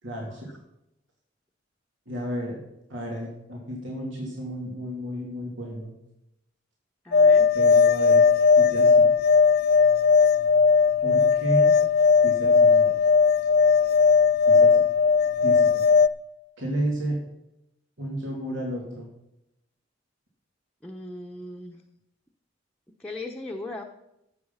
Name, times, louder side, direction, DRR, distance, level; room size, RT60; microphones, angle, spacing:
voice 1, 0.0-0.6 2.1-2.6 2.9-5.9 7.5-8.2 8.5-9.2 11.0-11.7 12.2-12.9 14.5-14.8 15.4-15.8 16.6-17.2 18.0-19.1, right 1 dB, 85° right, -2 dB, 3.0 m, -32 dB
voice 2, 7.0-7.5 20.8-21.8 23.0-23.8, left 2 dB, 5° left, 0 dB, 0.8 m, -37 dB
sound 1, 7.1-16.1, left 5 dB, 55° left, 0.5 m, -18 dB
13.0 x 8.3 x 5.6 m, 0.85 s
head